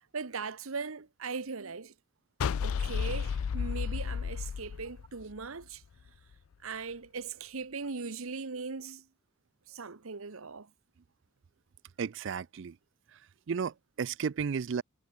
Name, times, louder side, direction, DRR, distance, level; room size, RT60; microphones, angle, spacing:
voice 1, 0.1-1.9 2.6-5.8 6.6-9.0 9.7-10.7, right 4 dB, 80° right, 1.1 m, -39 dB
sound 1, 2.4-5.6, left 6 dB, 80° left, 0.4 m, -32 dB
voice 2, 12.0-12.7 13.5-14.8, right 6 dB, 60° right, 0.4 m, -33 dB
head